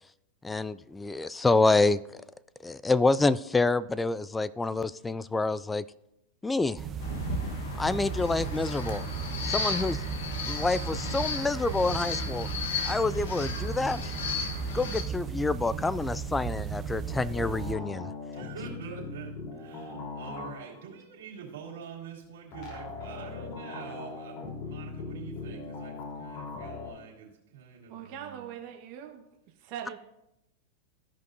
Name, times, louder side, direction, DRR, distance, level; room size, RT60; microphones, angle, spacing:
voice 1, 0.4-2.0 2.6-5.8 6.4-6.8 7.7-9.0 9.5-10.0 10.5-12.5 12.9-14.1 14.7-18.1, left 3 dB, 10° left, 19 dB, 0.3 m, -27 dB
sound 1, 6.8-17.7, right 7 dB, 25° right, 0.6 m, -35 dB
sound 2, 7.0-15.0, left 4 dB, 80° left, 1.2 m, -35 dB
sound 3, 17.1-20.9 22.5-26.9, left 4 dB, 45° left, 3.5 m, -40 dB
voice 2, 18.2-28.5, right 6 dB, 80° right, -3 dB, 2.8 m, -45 dB
voice 3, 27.9-29.2 29.6-30.0, right 9 dB, 50° right, 2 dB, 1.1 m, -41 dB
15.0 x 5.4 x 2.6 m, 0.85 s
hypercardioid pair, 120°, 0 cm